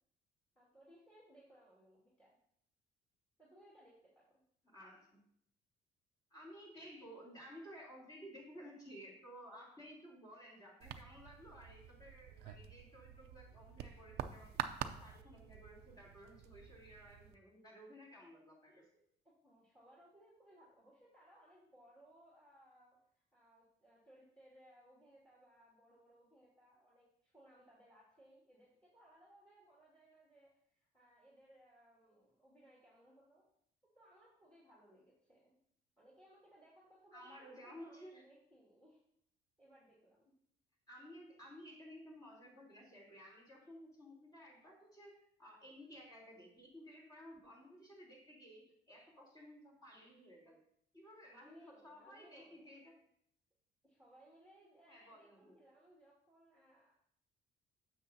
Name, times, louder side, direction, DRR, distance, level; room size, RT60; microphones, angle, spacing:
voice 1, 0.6-2.4 3.4-4.4 19.2-33.4 33.9-35.6 36.0-39.0 39.6-40.3 51.0-52.7 53.8-56.9, right 1 dB, 5° left, -6 dB, 2.5 m, -64 dB
voice 2, 4.6-5.2 6.3-14.6 14.9-18.8 37.1-38.2 40.9-50.6 50.9-53.0 54.9-55.6, equal, 25° left, -3 dB, 3.7 m, -55 dB
sound 1, 10.8-17.4, right 10 dB, 70° right, 0.6 m, -47 dB
9.5 x 7.2 x 2.8 m, 0.69 s
cardioid pair, 110°, 17 cm